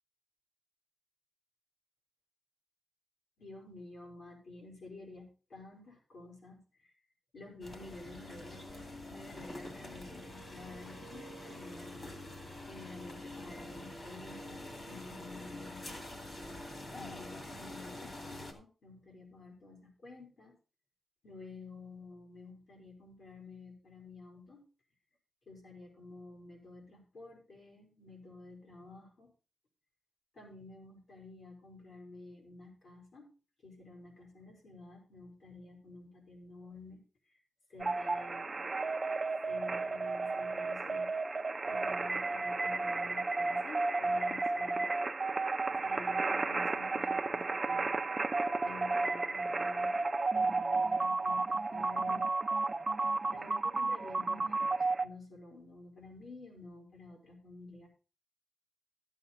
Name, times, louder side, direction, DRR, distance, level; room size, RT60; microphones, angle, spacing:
voice 1, 3.4-6.9 7.3-12.1 12.7-16.0 16.9-20.6 21.2-24.6 25.5-29.3 30.3-33.3 33.6-37.0 37.3-37.4 37.7-38.7 39.5-41.1 41.6-44.9 45.7-48.0 48.6-50.0 50.3-52.3 53.3-57.9, left 3 dB, 60° left, 0 dB, 4.5 m, -51 dB
sound 1, 7.6-18.5, left 1 dB, 35° left, 2.3 m, -46 dB
sound 2, 37.8-55.0, right 3 dB, 25° right, 0.6 m, -32 dB
12.5 x 8.2 x 4.1 m, 0.35 s
wide cardioid pair, 160°, 0 cm